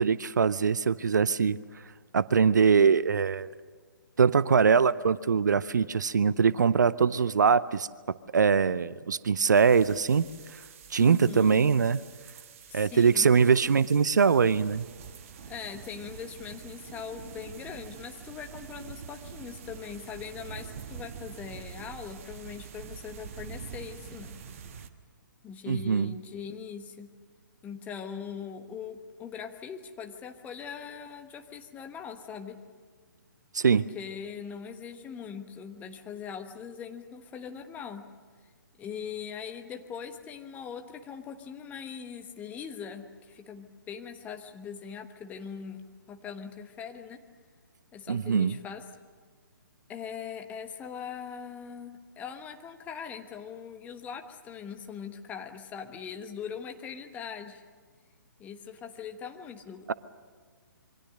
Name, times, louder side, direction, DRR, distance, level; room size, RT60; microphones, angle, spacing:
voice 1, 0.0-1.6 2.1-3.5 4.2-7.9 8.3-10.2 10.9-12.0 12.7-14.9 25.7-26.1 33.5-33.8 48.1-48.5 59.9-60.0, right 6 dB, 60° right, 18 dB, 0.6 m, -22 dB
sound 1, 9.5-24.9, right 7 dB, 40° right, 1.3 m, -46 dB
voice 2, 11.0-11.6 12.7-13.3 15.5-24.4 25.4-27.1 27.6-32.6 33.7-38.1 38.8-47.2 47.9-48.8 49.9-57.6 58.4-59.9, left 7 dB, 15° left, 6 dB, 1.2 m, -41 dB
27.0 x 23.5 x 6.5 m, 1.5 s
figure-of-eight pair, 130°, 11 cm